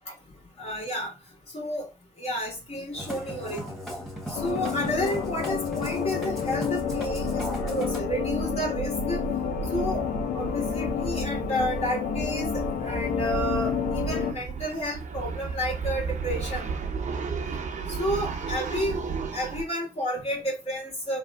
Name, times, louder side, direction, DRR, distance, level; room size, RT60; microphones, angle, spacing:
voice 1, 0.6-1.1 1.5-1.9 2.2-3.7 4.3-9.3 9.7-10.1 10.3-16.7 17.9-19.0 19.3-21.2, equal, 45° left, 2.0 m, -31 dB
Musical instrument, 2.9-8.0, equal, ahead, 1.5 m, -37 dB
sound 1, 3.2-3.3 3.5-3.6 3.9-19.6, right 5 dB, 55° right, 0.7 m, -34 dB
sound 2, 4.3-14.3, left 9 dB, 85° left, 0.4 m, -30 dB
3.3 x 2.4 x 2.4 m
supercardioid pair, 50°, 15 cm